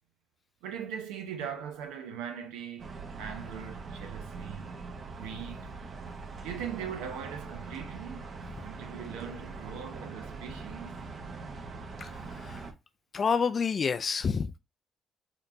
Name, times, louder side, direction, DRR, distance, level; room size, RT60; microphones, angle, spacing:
voice 1, 0.6-4.7 5.1-5.7 6.4-11.0, right 8 dB, 90° right, 0.7 m, -40 dB
sound 1, 2.8-12.7, right 4 dB, 55° right, 0.8 m, -42 dB
voice 2, 13.1-14.5, left 6 dB, 50° left, 0.3 m, -28 dB
4.3 x 2.9 x 2.5 m
supercardioid pair, 65°, 0 cm